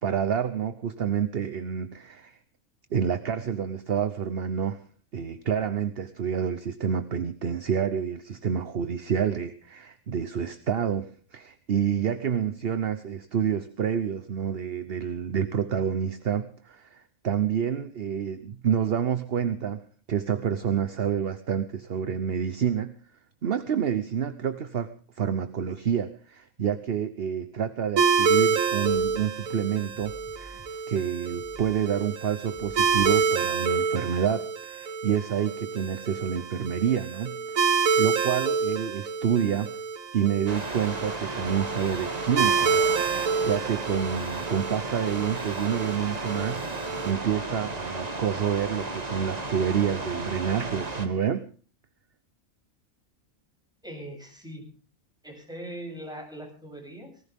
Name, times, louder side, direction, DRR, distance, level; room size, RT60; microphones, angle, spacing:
voice 1, 0.0-2.4 2.9-4.8 5.1-19.8 20.1-23.0 23.4-37.7 38.0-39.8 40.1-51.5, right 8 dB, 50° right, 12 dB, 1.0 m, -28 dB
sound 1, 28.0-47.1, right 5 dB, 75° right, 1.7 m, -28 dB
sound 2, 28.8-29.6 29.9-30.9 31.3-32.1 32.4-33.4, right 2 dB, 30° left, 5.1 m, -49 dB
sound 3, 40.5-51.1, right 2 dB, 30° right, 1.8 m, -34 dB
voice 2, 53.8-54.7 55.2-57.2, right 1 dB, 5° right, 0 dB, 7.9 m, -40 dB
19.0 x 18.0 x 3.6 m, 0.41 s
omnidirectional pair, 1.4 m